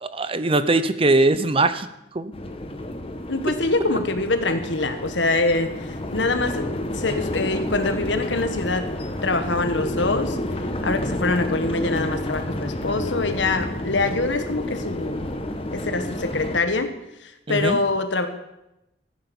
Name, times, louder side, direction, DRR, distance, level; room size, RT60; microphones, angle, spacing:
voice 1, 0.0-1.9 2.1-2.3 17.5-17.8, right 2 dB, 30° right, 13 dB, 0.7 m, -21 dB
sound 1, 2.3-16.6, left 1 dB, 30° left, 1.3 m, -30 dB
voice 2, 3.3-8.9 9.2-10.4 10.8-15.3 15.7-16.9 17.2-18.3, left 3 dB, 75° left, 8 dB, 1.5 m, -24 dB
15.0 x 9.7 x 7.1 m, 0.91 s
head